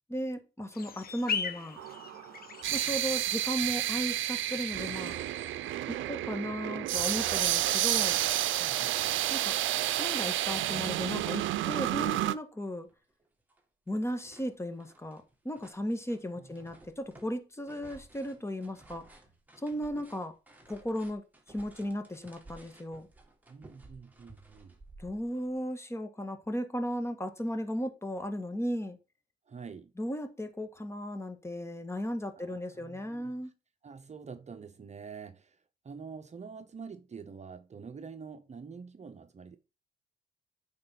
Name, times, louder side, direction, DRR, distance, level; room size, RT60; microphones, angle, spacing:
voice 1, 0.1-1.8 2.7-5.2 5.9-8.2 9.3-9.5 10.0-12.9 13.9-19.0 19.6-20.3 20.7-21.2 21.5-23.1 25.0-29.0 30.0-33.5, equal, 15° left, 1.6 m, -35 dB
sound 1, 0.7-5.8, left 6 dB, 50° left, 1.5 m, -40 dB
sound 2, 1.8-12.3, right 14 dB, 75° right, 0.6 m, -30 dB
voice 2, 8.6-9.2 16.4-16.5 23.5-24.8 29.5-29.9 32.4-33.4 33.8-39.6, right 5 dB, 35° right, 1.0 m, -46 dB
sound 3, 12.4-12.5 12.9-13.6 13.9-25.5, right 2 dB, 10° right, 2.4 m, -56 dB
8.7 x 5.8 x 4.2 m
cardioid pair, 90°, 20 cm